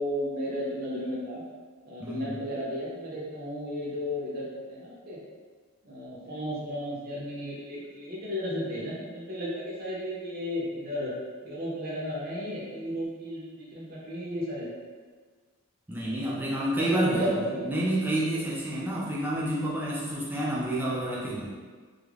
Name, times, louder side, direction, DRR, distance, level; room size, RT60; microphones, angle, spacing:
voice 1, 0.0-1.4 1.8-5.2 5.8-11.1 11.4-14.8 16.0-17.6, equal, 40° right, -6 dB, 0.6 m, -33 dB
voice 2, 2.0-2.4 15.9-17.3 17.7-21.5, right 1 dB, 10° right, -6 dB, 0.3 m, -29 dB
2.4 x 2.1 x 3.2 m, 1.5 s
head